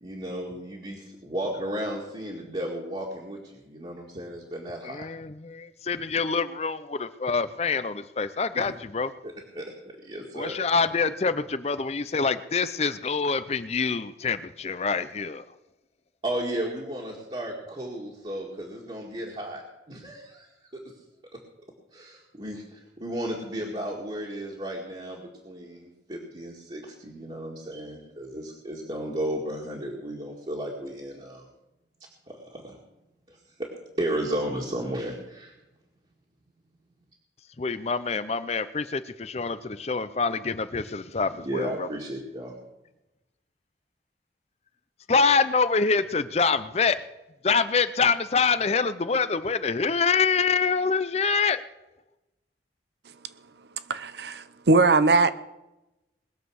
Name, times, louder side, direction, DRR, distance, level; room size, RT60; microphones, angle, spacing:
voice 1, 0.0-5.0 8.5-8.7 9.2-10.6 16.2-19.6 19.9-20.5 20.7-20.8 21.3-21.4 21.9-31.5 32.3-32.8 33.3-33.7 34.0-35.5 41.4-42.6, right 1 dB, 30° right, -3 dB, 2.0 m, -34 dB
voice 2, 4.8-9.1 10.3-15.4 37.6-41.9 45.1-47.0 47.4-51.6, left 5 dB, 35° left, 13 dB, 0.5 m, -25 dB
voice 3, 53.9-55.4, right 3 dB, 65° right, 14 dB, 0.7 m, -21 dB
20.5 x 7.4 x 6.3 m, 0.98 s
head